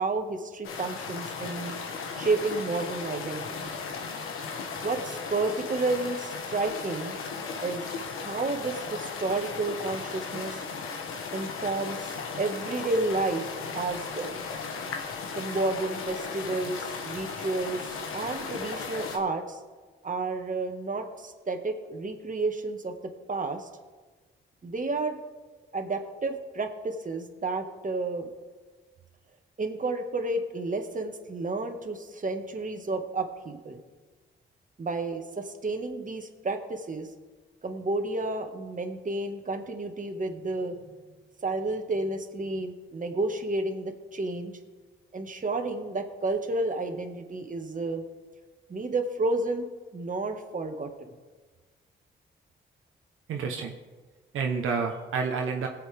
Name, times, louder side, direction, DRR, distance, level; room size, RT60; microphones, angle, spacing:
voice 1, 0.0-1.7 2.2-3.7 4.8-7.2 7.6-7.9 8.2-10.6 11.3-12.1 12.4-13.5 13.7-14.4 15.3-17.8 18.1-19.6 20.0-22.9 23.3-23.7 24.6-25.2 25.7-28.3 29.6-33.8 34.8-37.1 37.6-40.8 41.4-44.5 45.1-48.0 48.7-49.7 49.9-51.2, right 3 dB, 40° right, 4 dB, 1.6 m, -31 dB
sound 1, 0.6-19.2, left 5 dB, 90° left, 1.3 m, -36 dB
voice 2, 53.3-53.8 54.3-55.7, right 5 dB, 80° right, 2 dB, 1.0 m, -29 dB
20.0 x 7.9 x 3.5 m, 1.4 s
cardioid pair, 60°, 21 cm